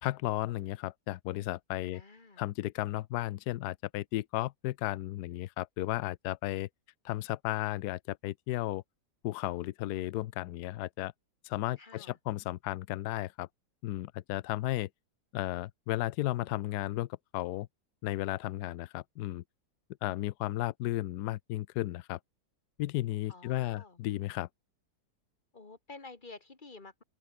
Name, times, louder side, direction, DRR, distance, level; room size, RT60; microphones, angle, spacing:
voice 1, 0.0-2.0 2.4-6.7 7.0-8.8 9.2-11.1 11.4-13.5 13.8-14.9 15.3-17.1 17.3-17.7 18.0-19.4 20.0-22.2 22.8-24.5, left 16 dB, 80° left, 1.1 m, -34 dB
voice 2, 1.9-2.4 11.8-12.2 23.3-24.0 25.5-27.0, left 3 dB, 30° left, 2.2 m, -50 dB
open air
omnidirectional pair, 1.8 m